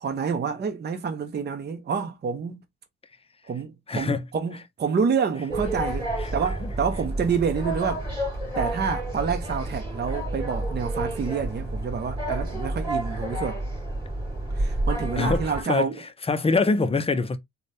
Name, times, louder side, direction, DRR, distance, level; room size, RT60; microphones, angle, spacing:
voice 1, 0.0-2.6 3.5-8.1 8.6-13.6 14.6-16.0, right 6 dB, 35° right, 0.8 m, -28 dB
voice 2, 3.9-4.2 6.2-6.3 6.6-6.7 15.2-15.9 16.2-17.4, left 3 dB, 20° left, 0.6 m, -24 dB
sound 1, 5.5-15.6, right 1 dB, 15° right, 2.5 m, -30 dB
3.9 x 2.3 x 3.3 m
cardioid pair, 90°, 30 cm